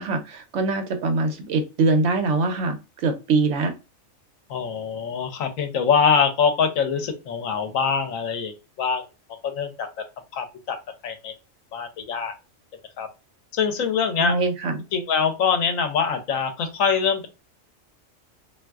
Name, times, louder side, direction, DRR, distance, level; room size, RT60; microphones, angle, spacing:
voice 1, 0.0-3.7 14.2-14.8, right 3 dB, 65° right, 7 dB, 0.9 m, -23 dB
voice 2, 4.5-9.0 9.4-9.9 10.3-10.8 11.0-11.3 11.7-12.3 13.0-13.1 13.5-14.3 14.9-17.3, left 6 dB, 80° left, 7 dB, 1.0 m, -23 dB
3.5 x 2.6 x 2.3 m, 0.29 s
omnidirectional pair, 1.4 m